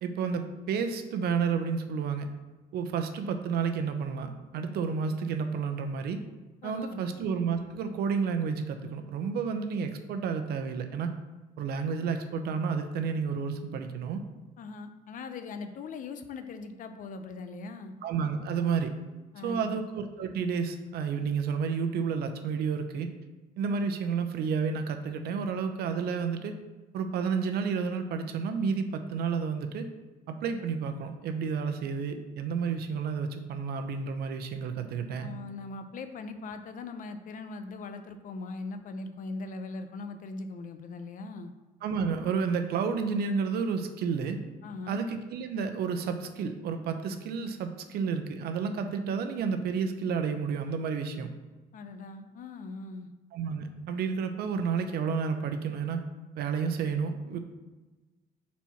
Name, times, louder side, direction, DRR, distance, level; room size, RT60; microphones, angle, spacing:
voice 1, 0.0-2.3 2.7-6.2 6.6-11.1 11.6-14.2 18.0-18.9 19.4-23.1 23.6-26.5 26.9-29.9 30.3-35.3 41.8-44.4 44.9-51.3 53.3-56.0 56.4-57.4, right 6 dB, 70° right, 7 dB, 0.7 m, -31 dB
voice 2, 6.6-7.1 14.6-17.9 19.3-19.8 35.2-41.5 44.6-45.0 51.7-53.1, left 3 dB, 50° left, 9 dB, 0.6 m, -40 dB
4.5 x 4.2 x 5.7 m, 1.2 s
cardioid pair, 110°, 17 cm